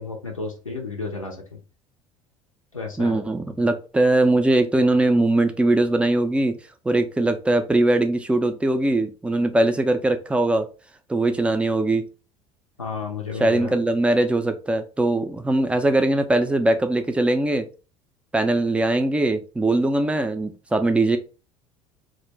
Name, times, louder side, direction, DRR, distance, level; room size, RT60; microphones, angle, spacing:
voice 1, 0.0-1.6 2.7-3.3 12.8-13.8, left 4 dB, 90° left, 1 dB, 0.5 m, -32 dB
voice 2, 3.0-6.6 6.8-10.7 11.1-12.0 13.4-17.7 18.3-21.2, right 2 dB, 5° right, 7 dB, 0.3 m, -21 dB
2.4 x 2.1 x 3.2 m, 0.33 s
figure-of-eight pair, 65°, 17 cm